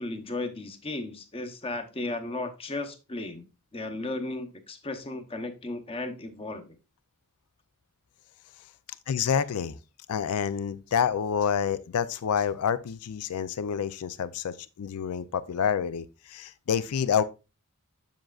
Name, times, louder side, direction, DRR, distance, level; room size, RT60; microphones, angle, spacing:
voice 1, 0.0-3.4 3.7-6.7, left 2 dB, 25° left, 0.8 m, -35 dB
voice 2, 9.1-9.8 10.1-17.2, left 7 dB, 80° left, 0.4 m, -28 dB
7.6 x 7.2 x 2.3 m
head